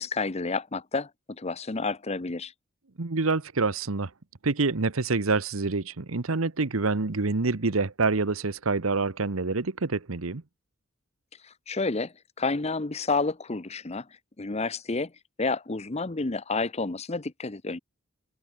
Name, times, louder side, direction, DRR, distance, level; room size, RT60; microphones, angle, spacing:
voice 1, 0.0-2.5 11.4-14.1 14.4-15.1 15.4-17.8, left 3 dB, 30° left, 0.9 m, -30 dB
voice 2, 3.0-4.1 4.4-10.4, right 3 dB, 85° right, 1.1 m, -26 dB
head